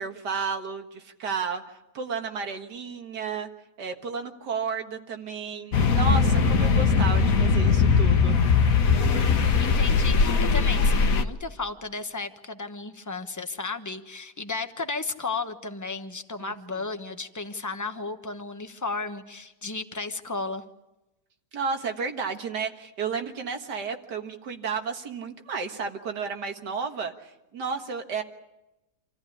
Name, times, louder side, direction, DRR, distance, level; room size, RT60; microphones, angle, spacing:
voice 1, 0.0-1.6 1.9-3.5 3.8-8.4 16.4-16.8 21.5-28.2, right 5 dB, 80° right, 5 dB, 2.2 m, -32 dB
sound 1, 5.7-11.2, left 5 dB, 55° left, 1.5 m, -20 dB
voice 2, 9.6-20.6, left 3 dB, 15° left, 7 dB, 0.9 m, -34 dB
27.5 x 14.5 x 9.9 m, 0.99 s
omnidirectional pair, 1.8 m